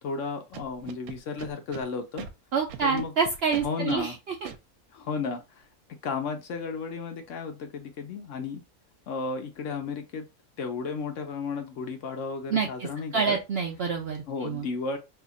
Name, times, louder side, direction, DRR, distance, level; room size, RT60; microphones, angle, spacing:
voice 1, 0.0-2.3 2.8-3.1 3.6-4.2 4.9-5.6 6.0-8.6 9.1-10.3 10.6-13.4 14.3-15.0, left 4 dB, 65° left, 0.9 m, -33 dB
Scratching (performance technique), 0.5-1.8 2.2-2.3 2.7-4.0 4.5-4.6, right 9 dB, 80° right, 1.0 m, -40 dB
voice 2, 2.5-4.4 12.5-14.7, right 5 dB, 65° right, 0.6 m, -28 dB
2.8 x 2.4 x 3.9 m
omnidirectional pair, 1.5 m